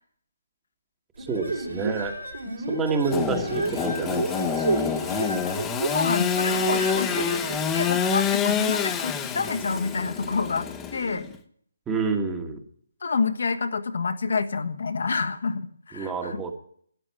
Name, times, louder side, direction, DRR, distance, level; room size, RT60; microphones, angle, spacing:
voice 1, 1.2-2.1 2.7-5.0 11.9-12.6 15.9-16.5, right 4 dB, 10° right, 5 dB, 1.5 m, -29 dB
sound 1, 1.2-8.0, right 3 dB, 85° right, 4.5 m, -31 dB
Engine / Sawing, 3.1-11.4, left 7 dB, 10° left, 1.0 m, -27 dB
voice 2, 5.9-11.3 13.0-16.4, left 4 dB, 65° left, 7 dB, 1.4 m, -28 dB
12.0 x 8.7 x 9.4 m, 0.62 s
figure-of-eight pair, 155°, 0 cm